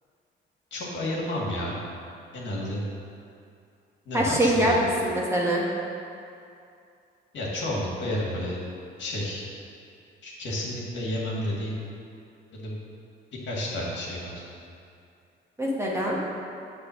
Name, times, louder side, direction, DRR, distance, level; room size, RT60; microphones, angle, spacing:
voice 1, 0.7-1.8 2.3-2.8 4.1-4.8 7.3-8.6 9.0-9.4 10.2-11.8 12.5-12.7 13.5-14.4, left 1 dB, 65° left, -4 dB, 1.8 m, -31 dB
voice 2, 4.1-5.6 15.6-16.2, right 1 dB, 15° right, -4 dB, 1.2 m, -23 dB
7.5 x 3.4 x 6.2 m, 2.5 s
cardioid pair, 90°, 20 cm